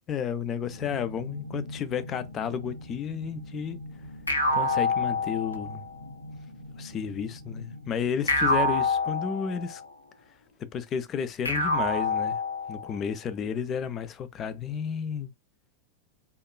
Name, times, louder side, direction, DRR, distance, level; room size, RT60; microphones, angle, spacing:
voice 1, 0.1-3.8 4.5-5.8 6.8-9.8 10.7-12.4 12.7-15.3, left 7 dB, 30° left, 0.4 m, -32 dB
sound 1, 0.6-8.6, left 1 dB, 80° right, 0.8 m, -43 dB
sound 2, 4.3-5.9 8.3-9.9 11.4-13.0, left 2 dB, 80° left, 0.6 m, -26 dB
2.9 x 2.2 x 2.2 m
figure-of-eight pair, 90°, 0 cm